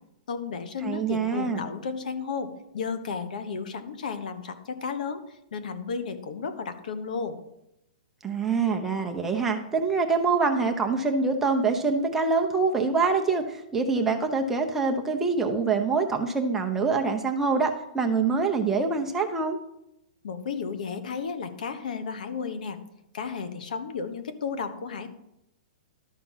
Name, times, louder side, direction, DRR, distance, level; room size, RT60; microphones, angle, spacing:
voice 1, 0.3-7.4 20.2-22.8 23.1-25.1, left 5 dB, 75° left, 10 dB, 1.3 m, -33 dB
voice 2, 0.8-1.6 8.2-19.6, right 4 dB, 10° right, 2 dB, 0.7 m, -25 dB
12.0 x 5.8 x 5.7 m, 0.82 s
hypercardioid pair, 160°, 4 cm